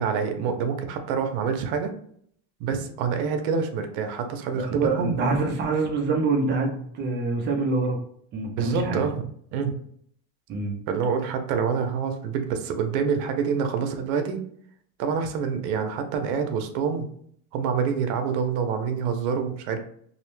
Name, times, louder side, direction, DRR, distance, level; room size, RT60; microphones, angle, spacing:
voice 1, 0.0-1.9 2.6-5.2 8.6-9.1 9.5-9.8 10.9-14.4 15.0-17.1 17.5-19.8, right 6 dB, 80° right, 6 dB, 0.6 m, -26 dB
voice 2, 4.5-8.0 8.3-9.0 10.5-10.8, right 3 dB, 25° right, 2 dB, 0.4 m, -25 dB
2.6 x 2.1 x 3.0 m, 0.63 s
cardioid pair, 145°, 42 cm